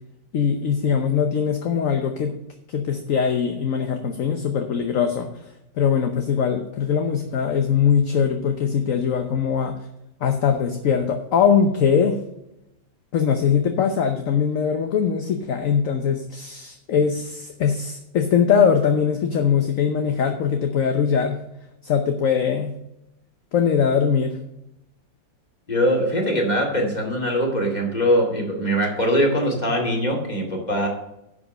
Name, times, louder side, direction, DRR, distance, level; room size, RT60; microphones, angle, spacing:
voice 1, 0.3-2.4 2.7-9.8 10.2-12.2 13.1-21.4 21.8-22.8 23.5-24.4, left 7 dB, 55° left, 5 dB, 1.1 m, -21 dB
voice 2, 25.7-30.9, equal, 20° left, 0 dB, 2.4 m, -22 dB
11.0 x 5.1 x 6.4 m, 0.86 s
omnidirectional pair, 2.0 m